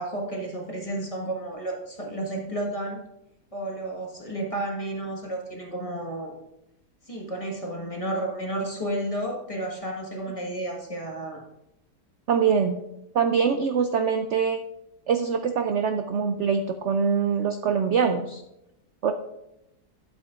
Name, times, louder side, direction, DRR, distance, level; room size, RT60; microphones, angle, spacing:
voice 1, 0.0-3.0 3.5-6.3 7.0-11.4, right 1 dB, 20° left, -1 dB, 1.4 m, -32 dB
voice 2, 12.3-12.8 13.1-14.6 15.1-18.4 19.0-19.1, right 6 dB, 80° right, 7 dB, 0.6 m, -24 dB
12.0 x 8.0 x 2.4 m, 0.86 s
omnidirectional pair, 1.8 m